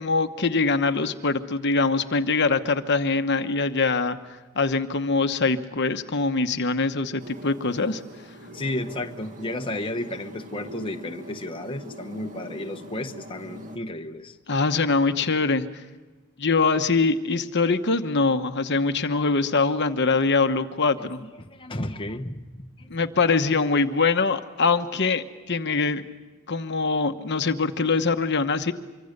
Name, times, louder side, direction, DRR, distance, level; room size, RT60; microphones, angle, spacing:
voice 1, 0.0-4.2 4.5-8.0 14.5-15.7 16.4-21.2 22.9-26.0 26.5-28.7, left 4 dB, 50° left, 8 dB, 1.1 m, -23 dB
sound 1, 7.2-13.8, equal, 35° right, 2.1 m, -42 dB
voice 2, 8.5-14.4 21.0-21.1 21.4-22.9, left 1 dB, 25° left, 4 dB, 1.0 m, -33 dB
25.0 x 25.0 x 6.7 m, 1.2 s
head